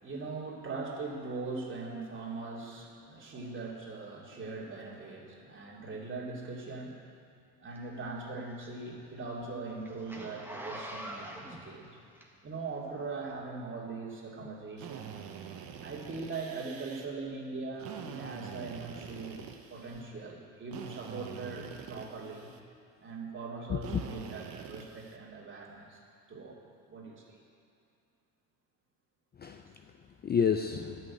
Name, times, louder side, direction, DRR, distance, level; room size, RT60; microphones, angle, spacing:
voice 1, 0.0-7.0 7.6-12.0 12.4-15.2 15.8-19.4 19.7-22.5 23.0-26.0 26.3-26.6 26.9-27.4, right 3 dB, 30° right, -4 dB, 2.8 m, -41 dB
Zipper (clothing), 7.7-12.7 13.2-13.4, right 1 dB, 5° right, 1.6 m, -44 dB
Drill, 14.8-17.1 17.8-20.0 20.7-22.6 23.8-25.2, right 8 dB, 65° right, 1.1 m, -45 dB
voice 2, 23.7-24.0 29.4-31.1, left 7 dB, 25° left, 6 dB, 0.5 m, -31 dB
11.0 x 6.3 x 8.6 m, 2.6 s
supercardioid pair, 95°, 38 cm